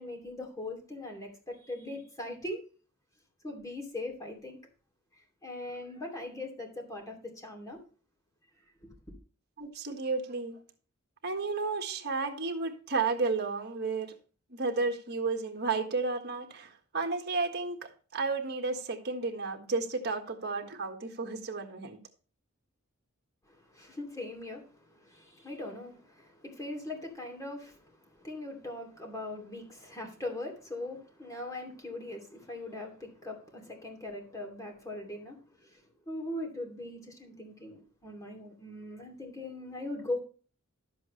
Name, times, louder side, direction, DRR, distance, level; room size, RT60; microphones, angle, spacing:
voice 1, 0.0-2.6 3.4-4.6 5.4-7.8 23.5-40.2, left 2 dB, 15° left, 2.6 m, -40 dB
voice 2, 9.6-10.6 11.2-14.1 14.5-22.0, right 4 dB, 50° right, 1.5 m, -32 dB
12.0 x 7.7 x 3.2 m
head